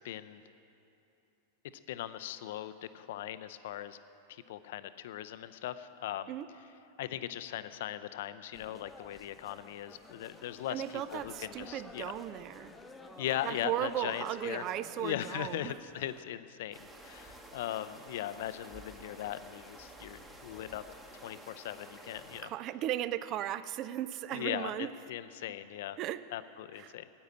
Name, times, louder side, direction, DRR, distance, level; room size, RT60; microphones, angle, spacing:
voice 1, 0.0-0.4 1.9-4.0 4.3-6.3 7.0-10.8 11.1-12.1 13.2-14.6 15.0-20.8 21.2-22.5 24.3-26.0 26.3-27.1, left 12 dB, 55° left, 13 dB, 0.5 m, -39 dB
sound 1, 8.5-16.2, left 2 dB, 10° left, 0.9 m, -52 dB
voice 2, 10.7-12.7 13.4-15.7 22.4-24.9 26.0-26.2 26.8-27.0, right 12 dB, 35° right, 15 dB, 0.4 m, -36 dB
sound 2, 16.7-22.4, right 1 dB, 10° right, 1.2 m, -52 dB
9.8 x 9.0 x 9.8 m, 2.9 s
figure-of-eight pair, 90°, 0 cm